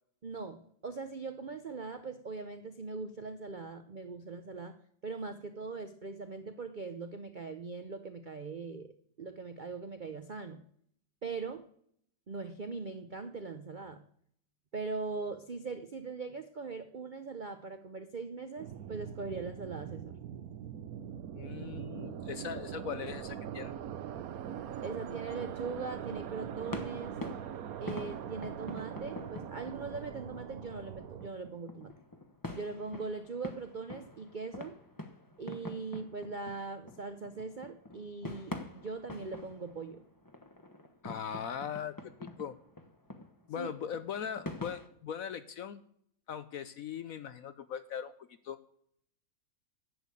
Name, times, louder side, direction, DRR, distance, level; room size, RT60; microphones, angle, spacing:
voice 1, 0.2-4.8 5.0-8.9 9.2-10.6 11.2-11.6 12.3-14.0 14.7-20.1 24.8-27.2 27.8-32.0 32.5-34.8 35.4-40.0 43.6-43.7, right 4 dB, 85° right, 9 dB, 0.4 m, -41 dB
sound 1, 18.6-31.3, right 9 dB, 60° right, 1.1 m, -42 dB
voice 2, 21.3-23.7 41.0-42.6 43.5-45.8 46.3-48.1 48.4-48.6, left 8 dB, 65° left, 13 dB, 0.9 m, -40 dB
sound 2, 26.3-44.9, left 1 dB, 15° left, 0.8 m, -46 dB
11.0 x 8.3 x 8.3 m, 0.69 s
omnidirectional pair, 2.0 m